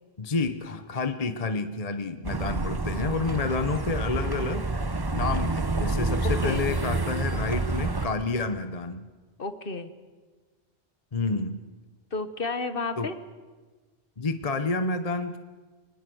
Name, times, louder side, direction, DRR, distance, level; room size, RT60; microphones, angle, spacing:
voice 1, 0.2-4.7 5.1-9.1 11.1-11.6 13.0-13.1 14.2-15.4, left 3 dB, 35° left, 9 dB, 1.0 m, -29 dB
sound 1, 2.2-8.1, right 3 dB, 20° right, 0.9 m, -28 dB
voice 2, 6.2-6.6 9.4-9.9 12.1-13.2, left 3 dB, 50° left, 10 dB, 1.5 m, -31 dB
24.0 x 20.0 x 7.9 m, 1.4 s
omnidirectional pair, 1.2 m